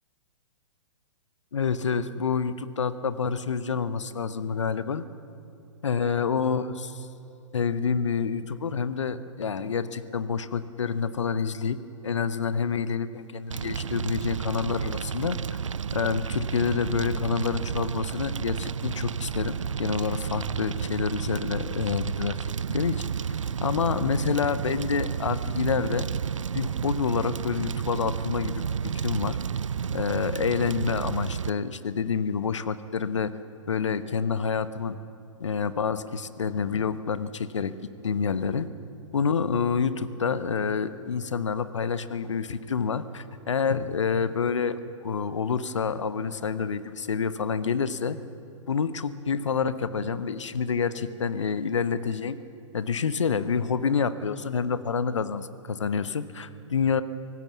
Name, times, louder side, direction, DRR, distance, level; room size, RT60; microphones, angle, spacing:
voice 1, 1.5-5.0 5.8-6.7 7.5-11.8 12.0-15.4 15.9-22.4 22.7-23.0 23.6-26.1 26.5-29.4 29.9-33.3 33.7-34.9 35.4-37.7 38.0-38.7 39.1-44.8 45.0-48.2 48.7-52.4 52.7-57.0, left 6 dB, 65° left, 14 dB, 1.1 m, -28 dB
Fire, 13.5-31.5, right 7 dB, 75° right, 0.4 m, -31 dB
25.0 x 18.5 x 7.1 m, 2.6 s
figure-of-eight pair, 115°, 16 cm